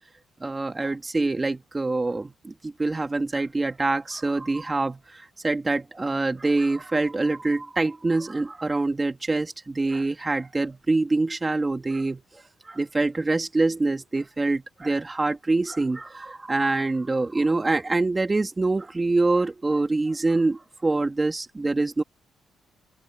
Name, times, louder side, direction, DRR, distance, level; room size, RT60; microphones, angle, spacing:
voice 1, 0.4-5.0 5.4-12.2 12.7-22.0, right 3 dB, 20° right, 2.7 m, -25 dB
open air
cardioid pair, 90°, 0 cm